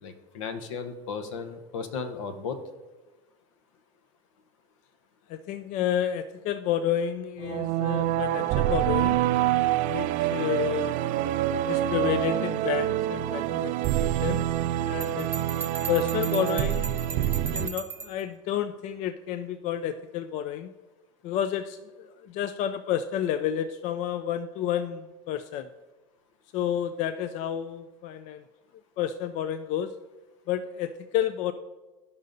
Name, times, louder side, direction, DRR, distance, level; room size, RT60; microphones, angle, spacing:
voice 1, 0.0-2.6, left 5 dB, 80° left, 9 dB, 0.9 m, -35 dB
voice 2, 5.3-9.2 9.9-11.0 11.7-14.5 14.8-15.3 15.9-17.1 17.5-20.7 21.2-25.7 26.5-28.4 29.0-29.9 30.5-31.5, left 10 dB, 50° left, 12 dB, 0.4 m, -30 dB
sound 1, 7.4-17.7, right 13 dB, 55° right, 0.4 m, -26 dB
Bell, 15.0-18.2, right 6 dB, 10° right, 0.8 m, -37 dB
13.5 x 5.5 x 2.6 m, 1.2 s
hypercardioid pair, 105°, 16 cm